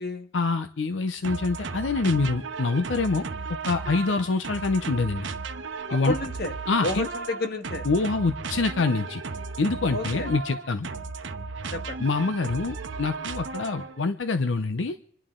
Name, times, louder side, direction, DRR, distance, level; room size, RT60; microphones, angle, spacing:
voice 1, 0.3-3.2 3.7-5.3 5.9-6.1 6.7-7.1 7.8-9.2 9.6-10.9 12.0-15.0, left 3 dB, 85° left, 9 dB, 0.6 m, -25 dB
sound 1, 1.2-14.0, right 4 dB, 85° right, 0.9 m, -35 dB
voice 2, 5.9-6.5 6.8-7.8 9.9-10.3 11.7-12.0, left 2 dB, 60° left, 7 dB, 1.4 m, -31 dB
27.0 x 10.5 x 3.7 m, 0.65 s
head